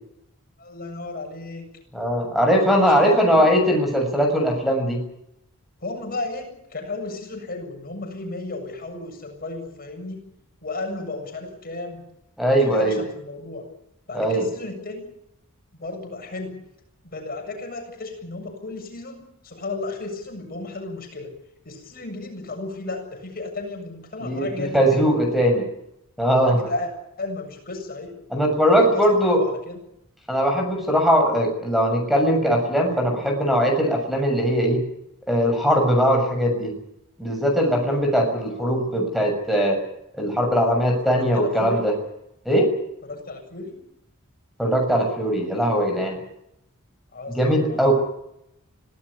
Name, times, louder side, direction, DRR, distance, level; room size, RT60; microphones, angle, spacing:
voice 1, 0.6-1.7 2.6-3.5 5.8-10.2 10.6-12.0 12.5-13.6 14.1-15.1 15.8-16.6 17.1-21.3 21.6-25.1 26.4-26.9 27.2-28.2 28.5-29.8 38.5-38.8 41.1-41.8 43.0-43.8 47.1-47.9, left 2 dB, 45° left, 4 dB, 7.4 m, -34 dB
voice 2, 1.9-5.0 12.4-13.0 14.1-14.4 24.2-25.6 26.2-26.6 28.3-29.4 30.3-34.8 35.3-36.7 37.2-39.8 40.1-41.9 42.4-42.7 44.6-46.2 47.3-47.9, equal, ahead, 3 dB, 6.8 m, -20 dB
25.5 x 17.0 x 8.4 m, 0.80 s
head